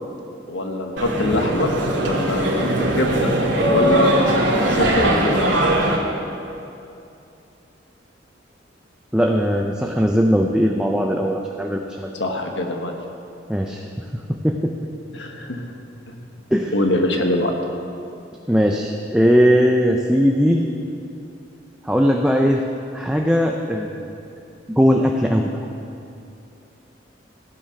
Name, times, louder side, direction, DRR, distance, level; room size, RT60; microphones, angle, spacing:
voice 1, 0.5-1.7 2.0-3.3 3.7-5.7 12.1-13.0 15.1-15.6 16.7-17.5, left 1 dB, 75° left, 3 dB, 1.4 m, -23 dB
sound 1, 1.0-6.0, right 1 dB, 75° right, 2.4 m, -20 dB
voice 2, 9.1-12.1 13.5-13.9 14.3-14.7 16.5-16.7 18.5-20.7 21.8-22.6 22.9-24.1 24.8-25.5, equal, 5° right, 1 dB, 0.6 m, -19 dB
15.5 x 9.3 x 5.9 m, 2.7 s
head